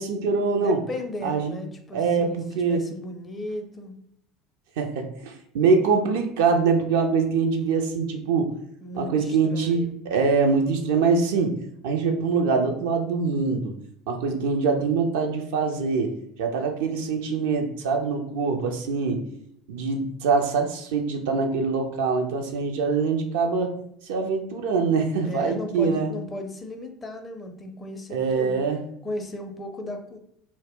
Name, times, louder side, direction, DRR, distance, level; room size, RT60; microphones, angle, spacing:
voice 1, 0.0-0.8 1.2-1.5 1.9-2.8 4.8-8.5 9.0-11.6 11.8-13.7 14.1-19.2 19.7-23.8 24.0-26.1 28.1-28.8, right 4 dB, 60° right, 4 dB, 0.4 m, -24 dB
voice 2, 0.5-3.9 8.8-9.9 25.2-28.6 29.0-30.2, left 1 dB, 20° left, 4 dB, 0.5 m, -35 dB
2.1 x 2.0 x 3.4 m, 0.72 s
figure-of-eight pair, 65°, 0 cm